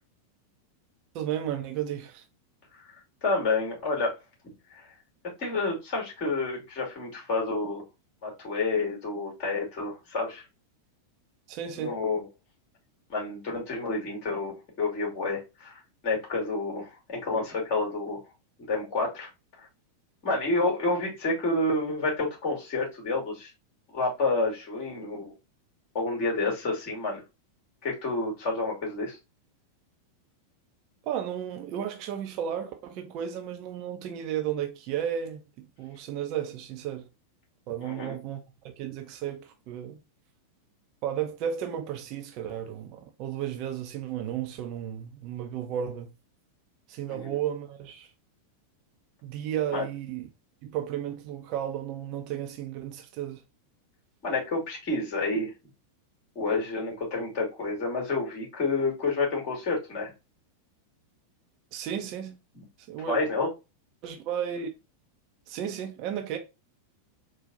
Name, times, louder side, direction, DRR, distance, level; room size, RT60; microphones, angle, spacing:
voice 1, 1.1-2.2 11.5-11.9 31.0-37.1 37.7-40.0 41.0-46.1 46.9-48.1 49.2-50.3 50.6-53.4 61.7-62.4 62.9-63.2 64.0-64.7 65.5-66.4, right 9 dB, 40° right, 0.7 m, -33 dB
voice 2, 3.2-4.1 4.7-4.9 5.4-7.8 8.2-10.4 11.8-12.3 13.1-18.2 18.6-19.3 20.2-23.5 23.9-25.3 25.9-27.2 27.8-29.2 37.8-38.2 47.1-47.3 49.7-49.9 54.2-55.5 56.3-60.1 62.5-62.6 63.1-63.5, left 3 dB, 40° left, 2.5 m, -29 dB
4.3 x 2.4 x 3.9 m
figure-of-eight pair, 90°, 0 cm